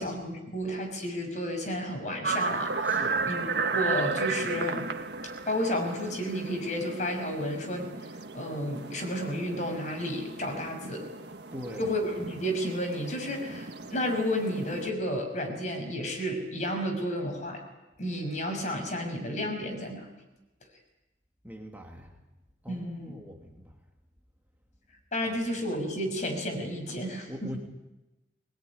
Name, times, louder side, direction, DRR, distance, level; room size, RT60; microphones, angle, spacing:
voice 1, 0.0-4.9 5.5-7.9 8.3-11.1 11.8-17.6 18.0-20.1 22.7-23.1 25.1-27.5, equal, 45° left, 3 dB, 6.3 m, -32 dB
sound 1, 2.2-14.9, right 4 dB, 75° right, 1.6 m, -34 dB
voice 2, 2.8-3.3 11.5-11.9 21.4-22.1 22.6-23.8 25.3-25.4 27.3-27.6, equal, 10° right, 1 dB, 2.3 m, -42 dB
23.5 x 20.5 x 9.8 m, 1.0 s
head